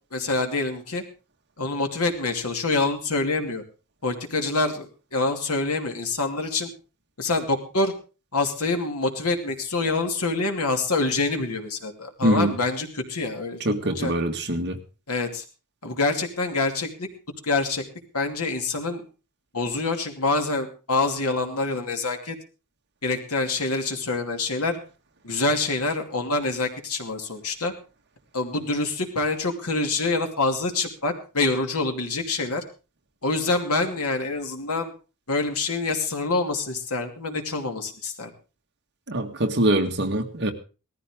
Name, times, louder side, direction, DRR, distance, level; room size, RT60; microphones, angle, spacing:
voice 1, 0.1-1.0 1.6-3.6 4.0-6.7 7.2-7.9 8.3-14.1 15.1-15.4 15.8-17.1 17.4-17.8 18.1-19.0 19.5-22.4 23.0-24.8 25.2-27.7 28.3-32.6 33.2-34.9 35.3-38.3, left 3 dB, 80° left, 4 dB, 2.6 m, -26 dB
voice 2, 12.2-12.5 13.7-14.8 39.1-40.5, right 1 dB, 50° right, 4 dB, 1.8 m, -23 dB
18.5 x 14.0 x 3.6 m, 0.33 s
head